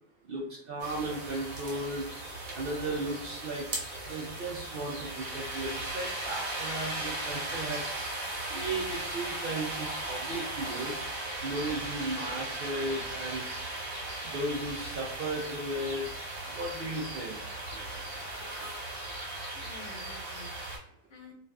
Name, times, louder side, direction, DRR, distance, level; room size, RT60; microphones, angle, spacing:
voice 1, 0.7-2.0 2.6-3.6 4.1-7.8 8.5-11.0 11.4-13.4 14.3-16.0 16.6-17.4, right 2 dB, 65° right, -3 dB, 0.6 m, -35 dB
sound 1, 0.8-20.8, right 2 dB, 90° right, 1.3 m, -37 dB
voice 2, 19.5-21.3, left 2 dB, 65° left, 0 dB, 1.0 m, -50 dB
2.4 x 2.4 x 2.2 m, 0.69 s
omnidirectional pair, 1.4 m